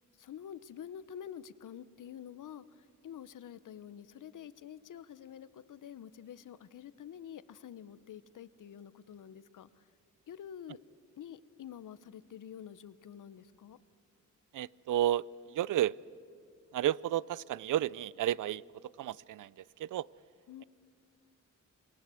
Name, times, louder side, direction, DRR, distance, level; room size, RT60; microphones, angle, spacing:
voice 1, 0.2-9.9 10.3-10.8 11.2-13.8 20.5-20.6, left 9 dB, 75° left, 16 dB, 0.9 m, -48 dB
voice 2, 14.5-15.3 15.5-15.9 16.7-18.6 19.0-19.5 19.8-20.1, right 12 dB, 75° right, 23 dB, 0.5 m, -31 dB
27.5 x 20.5 x 7.7 m, 2.5 s
cardioid pair, 95°, 31 cm